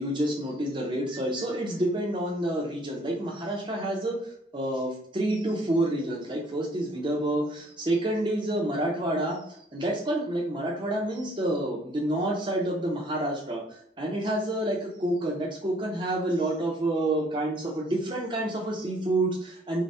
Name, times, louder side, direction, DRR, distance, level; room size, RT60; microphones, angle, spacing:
voice 1, 0.0-4.2 4.5-9.4 9.7-13.6 14.0-19.8, right 1 dB, 25° right, -1 dB, 0.7 m, -28 dB
3.3 x 2.2 x 2.6 m, 0.71 s
head